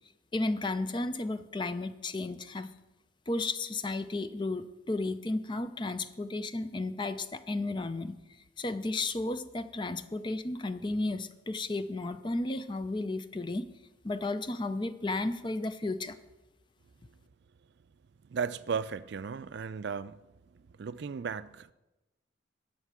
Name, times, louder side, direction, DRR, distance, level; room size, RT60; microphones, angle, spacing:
voice 1, 0.3-2.7 3.3-8.2 8.6-13.7 14.0-16.2, left 2 dB, 25° left, 0.5 m, -33 dB
voice 2, 18.3-20.2 20.5-21.7, right 6 dB, 60° right, 0.4 m, -35 dB
11.5 x 6.6 x 6.1 m
head